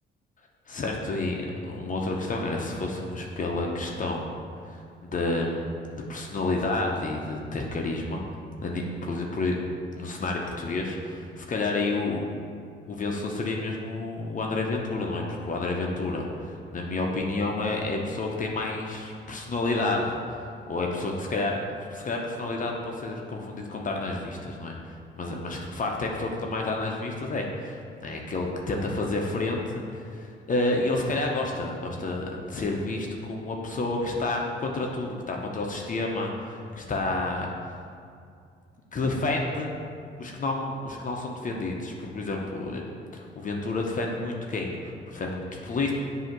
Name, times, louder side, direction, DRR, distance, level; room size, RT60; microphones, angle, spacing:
voice 1, 0.7-1.4 1.6-4.3 4.6-8.2 8.6-9.5 10.0-12.2 12.9-20.4 20.7-21.6 21.9-37.5 38.9-39.8 40.2-42.8 43.1-45.9, left 2 dB, 40° left, 0 dB, 0.8 m, -30 dB
7.8 x 2.8 x 5.9 m, 2.3 s
cardioid pair, 90°, 20 cm